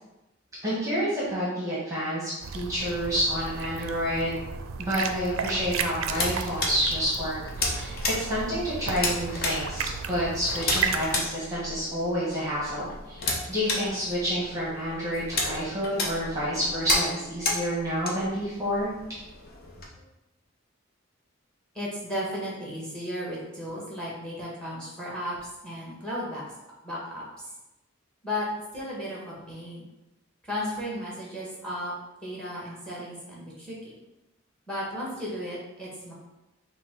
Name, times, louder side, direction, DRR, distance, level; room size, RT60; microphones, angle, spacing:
voice 1, 0.6-4.4 4.8-13.2 13.5-18.9, equal, 15° right, -7 dB, 1.1 m, -29 dB
sound 1, 2.4-11.3, right 5 dB, 80° right, 0.4 m, -34 dB
sound 2, 5.6-19.8, left 2 dB, 50° left, 0.8 m, -33 dB
voice 2, 21.7-26.4 26.8-27.2 28.2-28.5 28.7-29.8 30.5-31.9 32.2-33.9 34.7-36.1, equal, 5° left, -5 dB, 1.3 m, -34 dB
5.7 x 2.2 x 3.7 m, 0.97 s
head